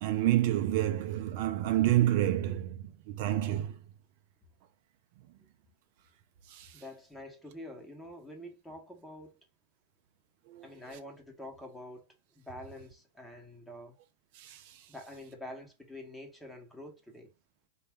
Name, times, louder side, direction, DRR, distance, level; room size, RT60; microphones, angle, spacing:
voice 1, 0.0-3.7 6.5-6.7 10.5-10.7 14.4-14.7, right 13 dB, 50° right, 0.4 m, -29 dB
voice 2, 6.7-9.4 10.6-12.1 12.4-14.0 14.9-17.3, left 1 dB, 5° left, 0.9 m, -47 dB
4.1 x 2.2 x 3.4 m
supercardioid pair, 155°, 0 cm